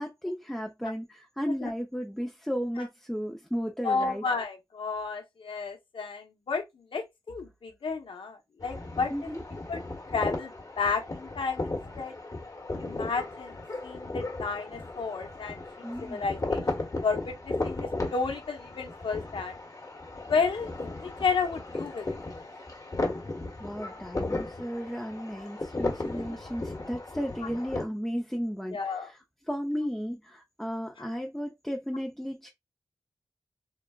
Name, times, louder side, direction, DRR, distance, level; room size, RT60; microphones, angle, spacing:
voice 1, 0.0-4.3 9.1-9.4 15.8-16.2 23.6-32.5, equal, 5° left, 0.5 m, -34 dB
voice 2, 3.8-6.6 6.9-9.1 9.7-9.8 10.1-11.7 12.0-12.1 12.8-13.6 13.8-19.5 20.3-22.5 28.7-29.1, left 4 dB, 80° left, 0.8 m, -32 dB
sound 1, 8.6-27.8, left 2 dB, 40° left, 1.1 m, -36 dB
3.8 x 2.1 x 2.2 m
cardioid pair, 50°, 9 cm